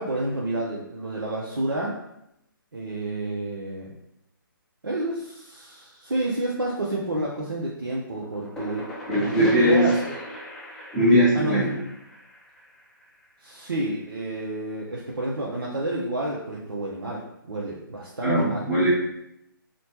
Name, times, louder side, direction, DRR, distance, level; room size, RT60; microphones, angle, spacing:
voice 1, 0.0-1.9 2.7-3.9 4.8-8.9 9.2-10.2 11.3-11.6 13.4-18.7, right 1 dB, 80° right, -4 dB, 0.6 m, -29 dB
sound 1, 8.1-13.7, left 1 dB, 5° left, 0.4 m, -39 dB
voice 2, 9.1-9.8 10.9-11.8 18.2-18.9, equal, 15° right, -11 dB, 0.8 m, -20 dB
3.1 x 2.1 x 2.9 m, 0.80 s
figure-of-eight pair, 135°, 12 cm